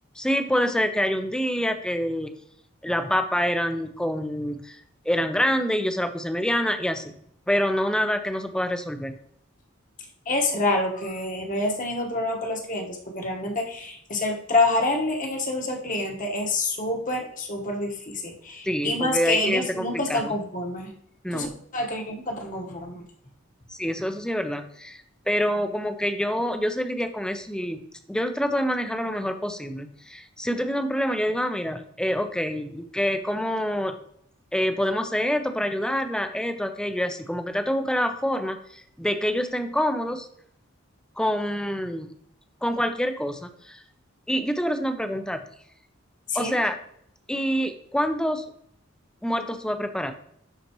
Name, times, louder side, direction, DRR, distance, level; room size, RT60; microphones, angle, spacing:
voice 1, 0.2-2.3 2.8-4.8 5.1-7.1 7.5-9.1 18.7-20.3 21.2-21.5 23.7-27.8 28.1-34.0 34.5-40.3 41.2-42.1 42.6-43.8 44.3-45.4 46.3-46.8 47.3-48.4 49.2-50.1, equal, 5° left, 8 dB, 0.5 m, -26 dB
voice 2, 10.3-20.9 21.3-21.5 21.7-23.0 46.3-46.6, left 2 dB, 40° left, 1 dB, 1.2 m, -27 dB
11.0 x 4.2 x 3.0 m, 0.67 s
head